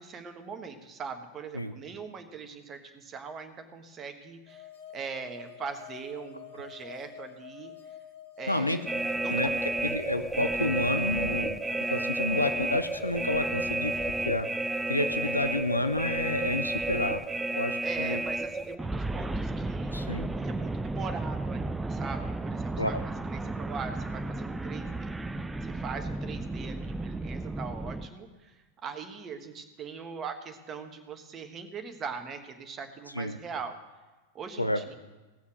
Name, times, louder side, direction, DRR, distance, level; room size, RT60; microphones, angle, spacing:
voice 1, 0.0-4.7 4.9-7.7 8.4-8.9 9.2-9.4 17.8-19.9 20.4-22.9 23.3-33.7 34.3-34.9, right 5 dB, 25° right, 7 dB, 1.4 m, -41 dB
sound 1, 4.5-14.2, left 11 dB, 50° left, 1.5 m, -47 dB
voice 2, 8.5-8.8 9.3-9.5 9.8-11.6 11.9-13.9 14.2-14.5 14.9-17.2 17.5-18.2 19.9-20.3 22.8-23.0 33.1-33.4 34.6-34.8, left 1 dB, 85° left, 9 dB, 0.7 m, -29 dB
sound 2, 8.9-28.1, right 2 dB, 10° right, 0.5 m, -32 dB
17.5 x 7.2 x 6.3 m, 1.2 s
figure-of-eight pair, 90°, 0 cm